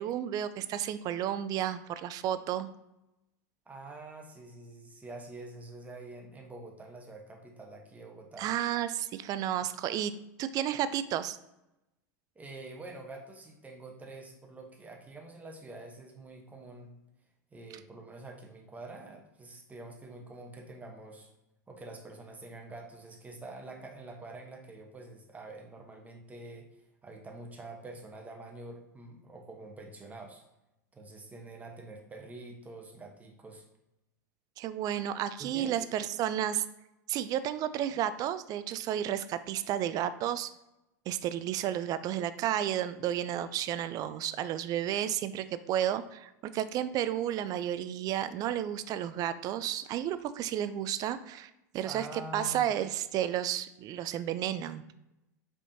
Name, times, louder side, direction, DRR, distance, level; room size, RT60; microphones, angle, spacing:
voice 1, 0.0-2.7 8.4-10.1 10.4-11.4 34.6-36.6 37.1-40.5 41.1-54.8, right 11 dB, 40° right, 13 dB, 0.3 m, -32 dB
voice 2, 3.7-8.5 12.3-16.9 17.5-21.3 21.7-26.7 27.0-30.4 30.9-33.6 35.4-35.9 51.8-52.7, right 2 dB, 15° right, 2 dB, 1.0 m, -46 dB
5.1 x 3.5 x 2.7 m, 0.91 s
hypercardioid pair, 90°, 10 cm